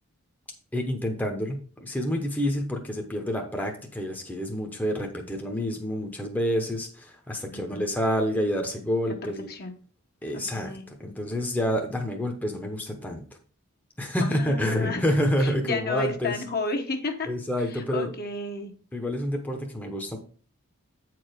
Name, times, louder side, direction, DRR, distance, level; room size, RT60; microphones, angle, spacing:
voice 1, 0.7-9.5 10.2-13.2 14.0-16.4 17.3-18.1 18.9-20.2, equal, 5° left, 2 dB, 0.9 m, -28 dB
voice 2, 7.5-7.9 9.2-9.7 10.3-10.9 14.2-15.0 15.4-17.3 17.7-18.7, left 3 dB, 45° left, 4 dB, 1.1 m, -32 dB
8.4 x 4.7 x 5.0 m, 0.41 s
head